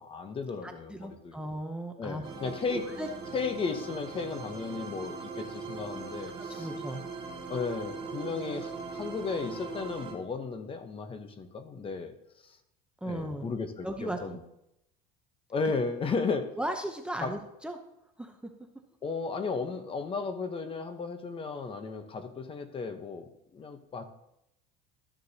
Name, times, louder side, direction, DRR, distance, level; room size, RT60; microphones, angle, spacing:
voice 1, 0.0-1.4 2.0-2.9 3.3-6.7 7.5-12.1 13.0-14.4 15.5-16.5 17.2-17.3 19.0-24.0, left 4 dB, 30° left, 8 dB, 1.0 m, -34 dB
voice 2, 0.6-2.2 2.7-3.1 6.4-7.0 13.0-13.5 13.8-14.4 15.6-15.7 16.6-17.8 18.2-18.4, right 1 dB, 5° right, 4 dB, 0.8 m, -36 dB
sound 1, 2.2-10.1, right 4 dB, 30° right, 2.1 m, -40 dB
13.0 x 6.6 x 2.9 m, 0.82 s
supercardioid pair, 115°, 19 cm